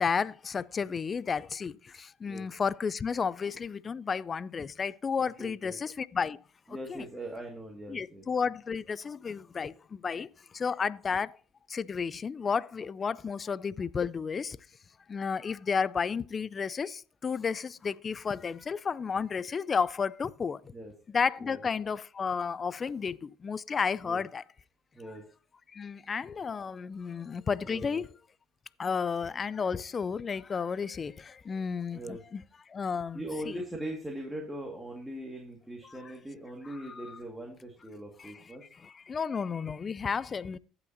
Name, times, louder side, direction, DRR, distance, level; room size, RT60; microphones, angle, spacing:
voice 1, 0.0-1.7 2.2-6.4 6.9-7.1 7.9-9.7 10.0-10.3 10.6-11.3 11.7-14.6 15.1-16.9 17.2-20.6 21.1-23.2 23.4-24.4 25.8-28.0 28.8-31.1 31.5-32.4 32.7-33.6 37.0-37.2 39.1-40.6, left 6 dB, 35° left, 0.4 m, -32 dB
voice 2, 5.4-5.8 6.7-8.2 20.7-20.9 21.4-21.6 24.0-24.2 24.9-25.2 27.6-28.0 31.9-32.2 33.1-38.6, right 1 dB, 10° right, 1.9 m, -41 dB
15.5 x 5.8 x 2.7 m
supercardioid pair, 80°, 0 cm